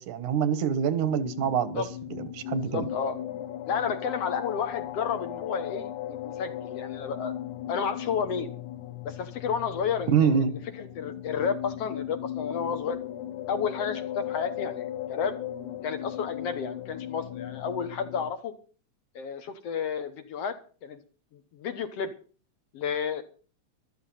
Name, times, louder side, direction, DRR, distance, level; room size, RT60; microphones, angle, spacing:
voice 1, 0.0-1.8 2.1-2.9 10.1-10.5, right 7 dB, 85° right, 2.6 m, -25 dB
sound 1, 1.0-18.3, left 12 dB, 85° left, 2.3 m, -37 dB
voice 2, 2.7-3.2 3.7-7.3 7.7-8.5 9.0-13.0 13.5-15.4 15.8-18.5 19.2-20.6 20.8-21.0 21.3-22.1 22.7-23.2, left 6 dB, 60° left, 2.0 m, -31 dB
13.5 x 12.5 x 5.5 m
omnidirectional pair, 3.4 m